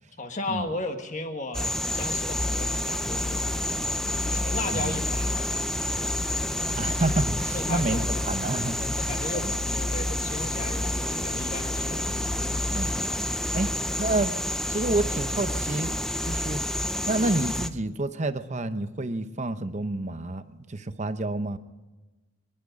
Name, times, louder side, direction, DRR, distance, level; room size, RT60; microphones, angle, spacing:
voice 1, 0.2-3.8 4.2-5.7 7.5-8.3 8.8-12.1 13.6-13.8, left 2 dB, 35° left, 5 dB, 1.5 m, -36 dB
sound 1, 1.5-17.7, left 1 dB, ahead, 0.5 m, -29 dB
sound 2, 2.4-13.0, left 3 dB, 75° left, 1.2 m, -36 dB
voice 2, 6.8-8.8 9.3-9.4 12.7-13.3 13.5-13.7 14.0-14.4 14.7-16.6 17.1-21.6, right 2 dB, 35° right, 11 dB, 0.8 m, -29 dB
25.0 x 11.0 x 5.2 m, 1.2 s
head